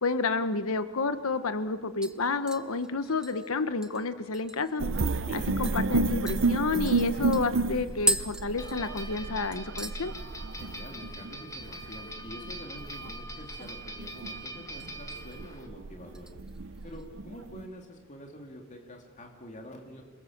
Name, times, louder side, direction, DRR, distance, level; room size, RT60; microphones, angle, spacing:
voice 1, 0.0-4.9 5.3-10.1, left 3 dB, 70° left, 11 dB, 1.1 m, -30 dB
sound 1, 1.0-1.1 1.4-1.7 2.0-4.8 5.2-5.3 5.6-5.8 6.3-9.3 9.5-10.0 10.4-10.8 11.0-11.1 13.2-13.9 14.2-14.9 15.3-15.6 16.1-17.1 17.4-17.5, right 1 dB, 5° right, 0.9 m, -37 dB
sound 2, 4.8-17.7, right 3 dB, 60° right, 0.7 m, -32 dB
voice 2, 5.3-5.6 10.6-16.3 16.8-20.0, equal, 35° left, 2 dB, 2.8 m, -46 dB
sound 3, 8.6-15.7, equal, 15° left, 1.6 m, -43 dB
28.0 x 21.0 x 7.3 m, 1.4 s
head